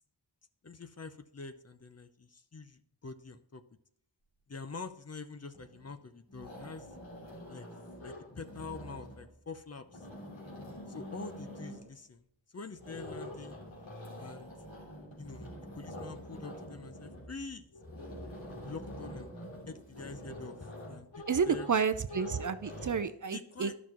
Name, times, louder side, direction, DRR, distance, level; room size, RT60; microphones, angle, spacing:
voice 1, 0.6-3.6 4.5-6.9 7.5-7.7 8.0-10.1 10.9-12.3 12.5-13.6 14.2-14.5 15.2-17.7 18.6-19.3 19.7-21.7 22.2-22.4 23.3-23.8, left 4 dB, 35° left, 10 dB, 0.7 m, -46 dB
sound 1, 5.5-6.0 6.3-9.3 9.8-11.9 12.7-23.0, left 1 dB, 85° left, 3.1 m, -46 dB
voice 2, 21.3-23.8, right 6 dB, 45° right, 12 dB, 0.5 m, -30 dB
11.5 x 6.1 x 3.0 m, 0.71 s
wide cardioid pair, 65°, 45 cm